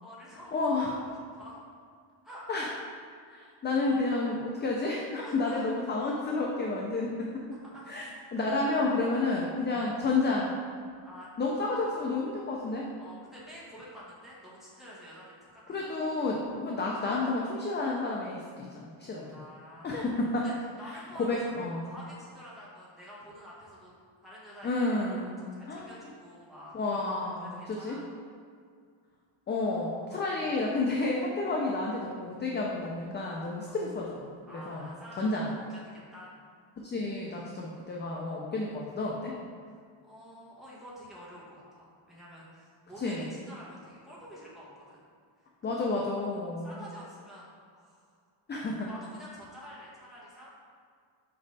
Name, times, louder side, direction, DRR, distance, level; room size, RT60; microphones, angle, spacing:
voice 1, 0.0-0.6 1.3-1.6 2.2-2.4 3.8-4.0 5.2-5.6 7.7-7.8 9.3-9.9 11.0-11.3 13.0-15.9 16.6-16.8 19.2-20.0 20.4-21.5 21.8-23.9 24.2-24.9 25.2-27.1 27.4-28.0 30.1-30.4 31.4-31.5 33.7-33.8 34.5-36.3 37.4-38.0 40.0-45.0 45.4-45.5 45.9-46.0 46.6-48.1 48.9-50.5, equal, ahead, -8 dB, 1.4 m, -49 dB
voice 2, 0.5-0.9 2.5-2.7 3.3-7.4 7.9-8.0 8.3-10.5 11.4-12.9 15.7-19.3 19.8-20.4 21.2-21.9 24.6-25.3 25.7-25.9 26.7-28.0 29.5-34.9 35.2-35.5 36.8-39.3 43.0-43.3 45.6-46.8 48.5-48.9, left 3 dB, 25° left, -2 dB, 0.3 m, -30 dB
5.4 x 5.1 x 3.9 m, 2.1 s
cardioid pair, 165°, 50 cm